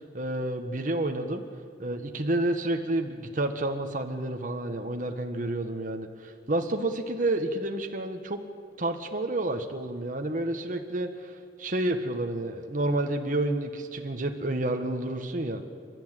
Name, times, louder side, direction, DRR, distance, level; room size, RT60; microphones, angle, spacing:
voice 1, 0.0-1.4 1.8-8.4 8.8-15.6, right 1 dB, 45° right, 5 dB, 1.4 m, -30 dB
29.5 x 12.5 x 9.1 m, 2.4 s
head